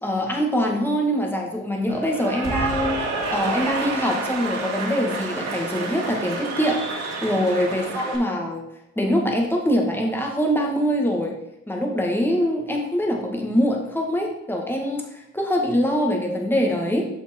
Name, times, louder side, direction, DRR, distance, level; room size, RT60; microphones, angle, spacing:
voice 1, 0.0-2.9 3.3-8.6 9.0-11.3 11.7-17.1, equal, 5° left, 0 dB, 1.8 m, -23 dB
Cheering / Applause, 1.9-8.2, right 3 dB, 60° right, 2.3 m, -29 dB
7.2 x 5.5 x 4.5 m, 0.84 s
cardioid pair, 90°, 30 cm